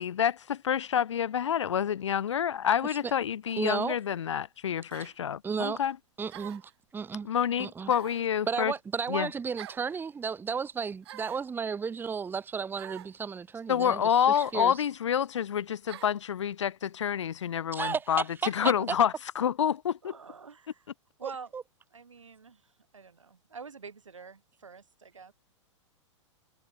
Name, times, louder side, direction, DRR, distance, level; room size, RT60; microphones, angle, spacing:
voice 1, 0.0-6.0 7.2-8.7 9.1-9.3 13.7-20.1, left 9 dB, 70° left, 0.6 m, -28 dB
sound 1, 3.5-3.7 4.9-5.2 6.3-6.7 7.9-8.3 9.6-9.9 11.0-11.5 12.8-13.1 14.3-14.6 15.9-16.2, right 13 dB, 55° right, 3.0 m, -46 dB
voice 2, 3.6-4.0 5.4-5.8 6.2-6.6 6.9-7.3 7.6-7.9 8.5-14.0 14.5-14.7 17.7-18.0 21.2-21.6, right 6 dB, 10° right, 1.2 m, -33 dB
voice 3, 18.4-18.9 20.0-20.8 21.2-21.5 21.9-25.3, right 5 dB, 75° right, 4.2 m, -46 dB
figure-of-eight pair, 100°, 16 cm